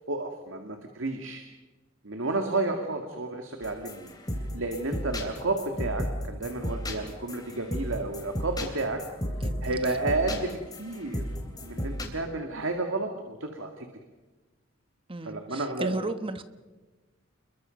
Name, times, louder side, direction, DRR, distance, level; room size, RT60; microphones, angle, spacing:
voice 1, 0.1-1.4 2.0-4.1 4.5-9.0 9.4-11.2 11.6-13.9 15.2-16.1, right 2 dB, 70° right, 4 dB, 2.2 m, -31 dB
sound 1, 3.6-12.0, equal, 20° left, 3.3 m, -35 dB
voice 2, 9.4-9.8 15.1-16.4, right 2 dB, 25° right, 10 dB, 1.2 m, -34 dB
29.5 x 22.5 x 5.3 m, 1.2 s
head